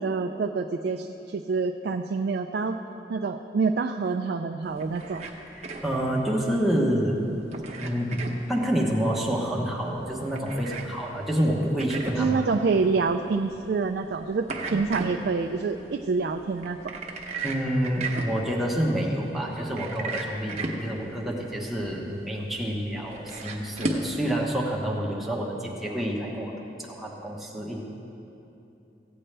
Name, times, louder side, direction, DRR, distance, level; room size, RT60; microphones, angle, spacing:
voice 1, 0.0-2.8 3.1-5.3 12.2-16.9, right 4 dB, 60° right, 5 dB, 0.3 m, -27 dB
sound 1, 4.6-24.1, right 2 dB, 35° right, 0.8 m, -37 dB
voice 2, 5.6-7.3 7.8-12.4 17.4-26.5 26.9-27.8, equal, ahead, -3 dB, 1.0 m, -28 dB
15.5 x 8.7 x 3.3 m, 2.9 s
head